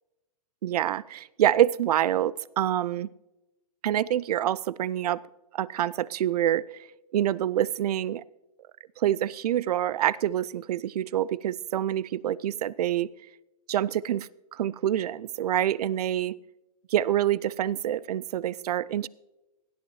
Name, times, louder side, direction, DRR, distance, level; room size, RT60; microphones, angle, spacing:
voice 1, 0.6-3.1 3.8-5.2 5.5-6.6 7.1-8.2 9.0-13.1 13.7-16.3 16.9-19.1, right 11 dB, 80° right, 22 dB, 0.4 m, -26 dB
17.5 x 12.5 x 3.1 m, 0.99 s
hypercardioid pair, 125°, 20 cm